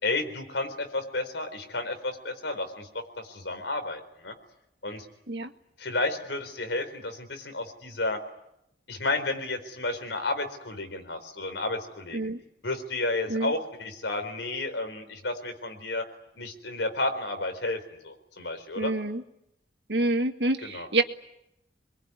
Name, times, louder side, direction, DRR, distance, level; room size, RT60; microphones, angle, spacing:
voice 1, 0.0-4.3 4.8-5.1 5.8-8.2 8.9-12.3 12.6-16.1 16.4-18.9 20.6-20.9, left 2 dB, 80° left, 7 dB, 4.2 m, -32 dB
voice 2, 18.8-19.2 19.9-21.0, right 2 dB, 70° right, 7 dB, 1.8 m, -27 dB
26.5 x 22.5 x 9.7 m, 0.83 s
head